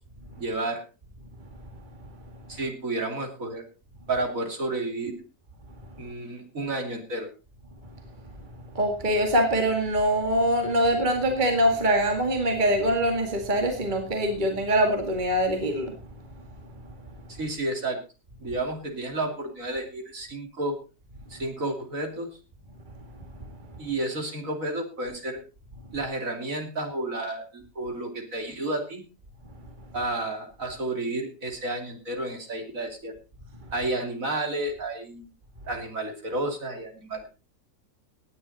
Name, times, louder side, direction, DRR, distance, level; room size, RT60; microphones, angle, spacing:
voice 1, 0.4-0.8 2.5-3.6 4.1-5.2 6.0-7.3 17.3-18.0 18.4-20.8 21.3-22.3 23.8-25.4 25.9-29.0 29.9-33.1 33.7-35.3 35.6-37.3, right 2 dB, 45° right, 4 dB, 3.2 m, -31 dB
voice 2, 8.7-15.9, equal, 25° right, 4 dB, 2.1 m, -23 dB
17.5 x 10.0 x 4.2 m, 0.32 s
omnidirectional pair, 2.0 m